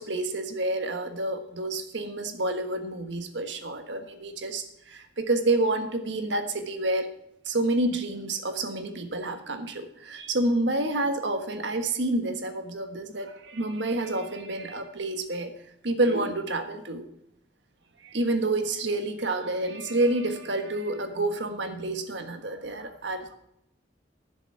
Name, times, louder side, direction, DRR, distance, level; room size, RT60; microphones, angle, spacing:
voice 1, 0.0-7.1 7.4-15.5 15.8-17.1 18.1-23.3, right 2 dB, 80° right, 6 dB, 1.5 m, -28 dB
11.0 x 7.1 x 7.0 m, 0.76 s
head